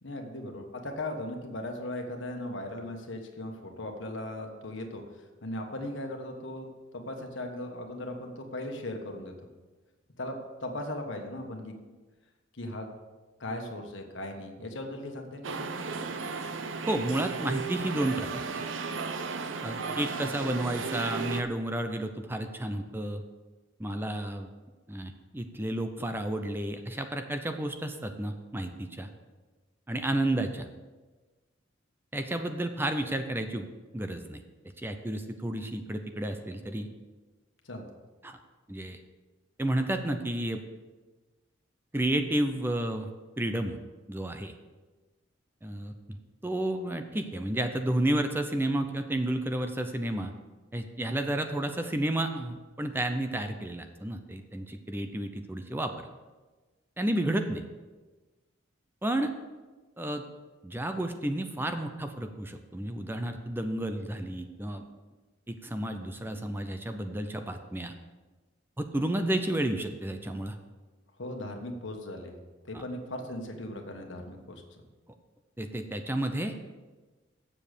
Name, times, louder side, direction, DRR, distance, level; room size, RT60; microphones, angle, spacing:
voice 1, 0.0-5.0 5.4-6.7 6.9-9.3 10.2-11.7 12.5-12.9 13.4-15.8 37.6-37.9 71.2-72.4 72.6-74.6, left 1 dB, 70° left, 3 dB, 1.4 m, -38 dB
sound 1, 15.4-21.4, right 4 dB, 75° right, 0.6 m, -35 dB
voice 2, 16.9-18.6 19.6-23.2 23.8-24.5 24.9-29.1 29.9-30.7 32.1-33.7 33.9-34.4 34.8-36.9 38.2-38.4 38.7-39.0 39.6-40.6 41.9-43.1 43.4-43.8 44.1-44.5 45.6-45.9 46.4-50.3 50.7-56.1 57.0-57.6 59.0-59.3 60.0-60.2 60.6-64.8 65.5-67.9 68.8-70.6 72.7-72.8 75.6-76.5, right 1 dB, 10° right, 7 dB, 0.5 m, -31 dB
7.6 x 7.0 x 6.6 m, 1.3 s
head